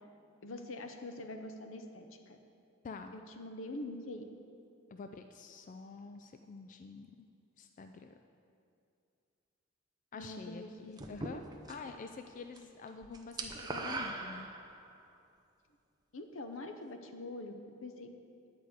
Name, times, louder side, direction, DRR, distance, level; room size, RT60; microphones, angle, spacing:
voice 1, 0.4-2.4 3.1-4.2 10.1-11.2 16.1-17.5 17.8-18.1, left 2 dB, 75° left, 6 dB, 0.8 m, -44 dB
voice 2, 2.8-3.2 4.9-7.3 7.6-8.2 10.1-11.4 11.7-14.5, left 4 dB, 40° left, 6 dB, 0.3 m, -47 dB
sound 1, 11.0-12.0 12.3-12.6 12.9-15.0, right 3 dB, 20° right, 0.6 m, -40 dB
10.0 x 4.9 x 8.0 m, 2.5 s
head